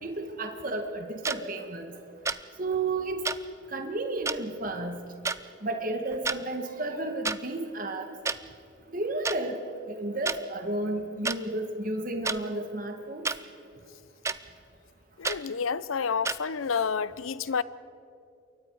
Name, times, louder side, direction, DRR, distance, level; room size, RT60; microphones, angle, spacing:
voice 1, 0.0-2.0 2.6-3.2 3.7-5.0 5.6-8.1 8.9-9.6 9.9-13.2, right 2 dB, 45° right, 1.7 m, -32 dB
sound 1, 1.2-1.4 2.3-2.4 3.2-3.4 4.3-4.4 5.2-5.4 6.1-6.4 7.2-7.4 8.3-8.4 9.2-9.4 10.3-10.4 11.2-11.4 12.2-12.4 13.2-13.4 14.2-14.4 15.2-15.4 16.2-16.4, right 4 dB, 15° right, 0.4 m, -29 dB
voice 2, 15.2-17.6, left 6 dB, 90° left, 0.6 m, -29 dB
28.0 x 23.0 x 4.8 m
head